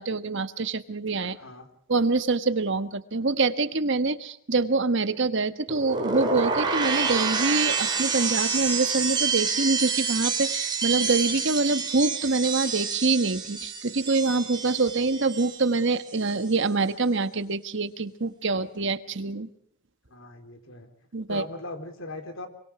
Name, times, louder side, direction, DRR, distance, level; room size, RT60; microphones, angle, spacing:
voice 1, 0.0-1.4 1.9-19.5 21.1-21.4, right 3 dB, 60° right, 10 dB, 1.4 m, -25 dB
voice 2, 1.2-1.7 20.1-20.9 21.3-22.5, left 2 dB, 70° left, 7 dB, 4.0 m, -39 dB
sound 1, 5.7-15.8 16.1-16.5, right 5 dB, 20° right, 4.3 m, -28 dB
26.0 x 24.0 x 4.9 m, 0.67 s
head